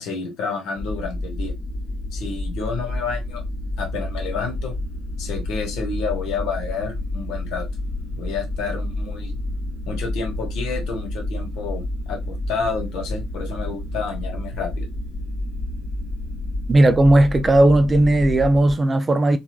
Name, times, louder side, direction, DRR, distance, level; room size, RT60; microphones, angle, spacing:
voice 1, 0.0-1.5 2.1-3.4 3.8-4.7 5.2-7.7 8.1-9.4 9.9-14.9, left 5 dB, 60° left, 1.0 m, -30 dB
sound 1, 0.8-18.8, left 1 dB, 35° left, 1.2 m, -29 dB
voice 2, 16.7-19.4, right 1 dB, 25° right, 0.4 m, -16 dB
3.1 x 2.3 x 2.4 m
figure-of-eight pair, 55°, 0 cm